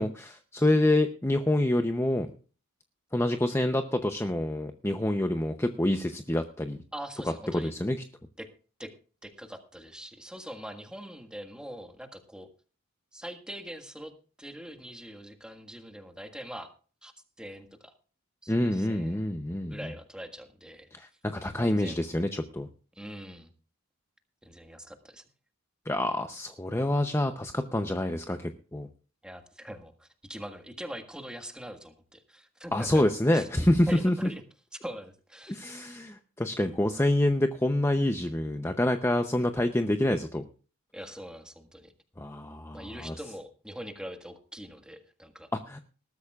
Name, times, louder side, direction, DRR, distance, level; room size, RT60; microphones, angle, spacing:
voice 1, 0.0-2.3 3.1-6.8 7.5-8.0 18.5-19.8 20.9-22.7 25.9-28.9 32.7-34.1 35.5-40.4 42.2-43.1 45.5-45.8, left 1 dB, 10° left, 7 dB, 0.7 m, -27 dB
voice 2, 6.9-7.7 8.4-8.5 8.8-8.9 9.2-12.5 13.1-14.1 14.4-16.7 17.0-17.1 17.4-17.9 18.4-19.3 19.6-20.9 21.6-22.0 22.9-23.5 24.4-25.3 29.2-33.0 33.3-34.4 34.7-35.6 40.9-41.9 42.7-45.5, equal, 5° right, 6 dB, 1.6 m, -43 dB
20.0 x 13.0 x 2.4 m, 0.38 s
head